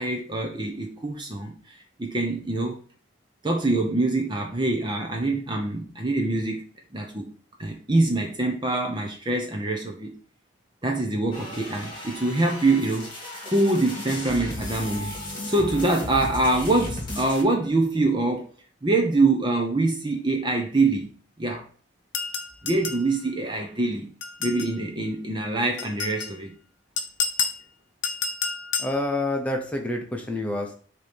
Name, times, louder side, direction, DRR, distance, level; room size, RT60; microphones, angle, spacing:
voice 1, 0.0-2.8 3.4-6.6 6.9-7.3 7.6-10.1 10.8-13.1 13.4-15.2 15.5-18.5 18.8-21.1 21.4-21.6 22.6-24.1 24.4-26.5, right 2 dB, 25° right, 2 dB, 0.7 m, -24 dB
sound 1, 11.3-17.4, left 1 dB, 25° left, 1.8 m, -35 dB
sound 2, 22.1-23.1 24.2-24.8 25.8-26.3 27.0-27.6 28.0-29.0, left 5 dB, 70° left, 0.7 m, -29 dB
voice 2, 28.8-30.8, left 1 dB, 5° left, 1 dB, 0.9 m, -28 dB
6.7 x 3.0 x 5.2 m, 0.43 s
head